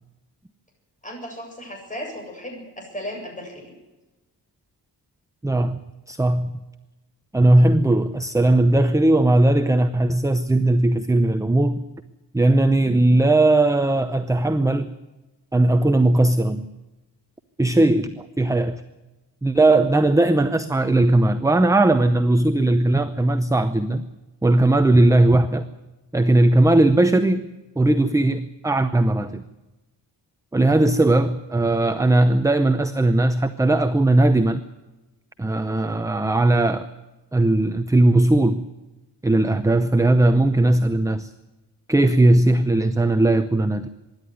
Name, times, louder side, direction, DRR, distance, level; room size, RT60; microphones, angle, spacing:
voice 1, 1.0-3.7, equal, 20° left, 0 dB, 7.9 m, -35 dB
voice 2, 5.4-5.8 6.1-6.5 7.3-11.8 12.3-14.9 15.5-16.6 17.6-18.8 19.4-24.0 24.4-25.7 26.1-27.5 27.8-29.4 30.5-34.6 35.4-36.9 37.3-38.6 39.2-41.3 41.9-43.9, right 2 dB, 10° right, 9 dB, 0.7 m, -18 dB
25.0 x 11.5 x 9.6 m, 1.1 s
wide cardioid pair, 170°, 41 cm